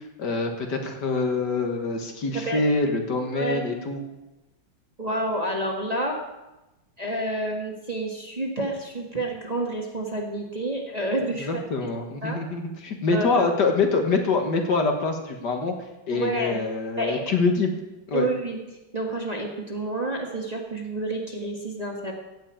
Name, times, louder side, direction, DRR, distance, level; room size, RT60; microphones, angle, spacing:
voice 1, 0.2-4.0 11.5-15.7 16.1-17.7 18.1-18.3, left 3 dB, 60° left, 3 dB, 2.1 m, -25 dB
voice 2, 5.0-6.2 7.0-11.9 12.2-12.4 13.1-13.4 16.1-16.6 17.0-17.3 18.1-18.6 18.9-22.1, right 1 dB, 20° right, 0 dB, 1.6 m, -29 dB
16.0 x 5.6 x 8.8 m, 1.0 s
omnidirectional pair, 2.1 m